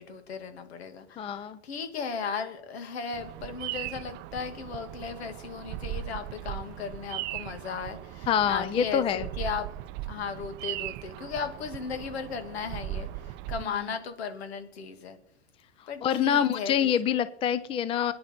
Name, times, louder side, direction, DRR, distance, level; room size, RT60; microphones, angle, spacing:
voice 1, 0.0-9.7 10.1-15.2 15.9-16.9, left 6 dB, 70° left, 8 dB, 2.3 m, -36 dB
voice 2, 1.2-1.6 8.3-9.2 16.0-18.1, left 8 dB, 15° left, 15 dB, 0.5 m, -26 dB
Bird vocalization bird call bird song, 3.1-13.6, right 13 dB, 35° right, 0.5 m, -38 dB
22.0 x 10.0 x 4.5 m, 0.78 s
hypercardioid pair, 115°, 32 cm